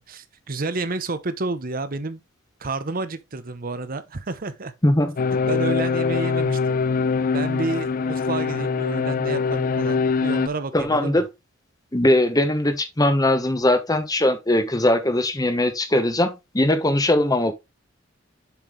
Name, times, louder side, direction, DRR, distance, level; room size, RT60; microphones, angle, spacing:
voice 1, 0.0-2.2 2.6-4.7 5.5-6.8 7.3-11.3, right 3 dB, 45° right, 0.8 m, -30 dB
voice 2, 4.8-5.1 10.7-11.3 11.9-17.5, left 1 dB, 20° left, 1.1 m, -20 dB
sound 1, 5.2-10.5, left 5 dB, 45° left, 0.4 m, -23 dB
7.2 x 5.8 x 3.1 m
head